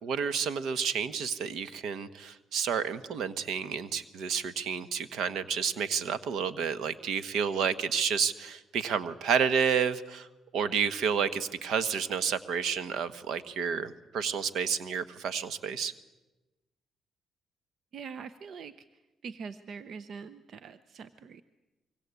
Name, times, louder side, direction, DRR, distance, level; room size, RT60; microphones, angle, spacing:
voice 1, 0.0-10.3 10.5-15.9, right 6 dB, 75° right, 14 dB, 1.3 m, -30 dB
voice 2, 17.9-18.7 19.2-21.4, right 6 dB, 60° right, 14 dB, 0.9 m, -43 dB
26.0 x 23.5 x 8.3 m, 1.1 s
cardioid pair, 90°, 0 cm